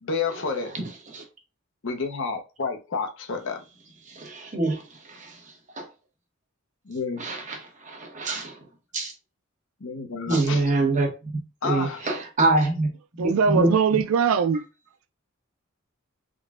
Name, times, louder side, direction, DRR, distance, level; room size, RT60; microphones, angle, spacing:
voice 1, 0.0-0.7 1.8-3.6 6.9-7.2 9.8-10.6 11.6-12.0, left 5 dB, 60° left, 0.7 m, -30 dB
voice 2, 4.2-4.8 5.8-5.9 7.2-7.6 7.9-8.5 8.9-9.1 10.3-11.1 11.3-12.9 13.2-13.7, right 2 dB, 35° right, 1.0 m, -24 dB
voice 3, 13.2-14.6, right 6 dB, 80° right, 0.4 m, -21 dB
3.8 x 2.1 x 3.6 m
head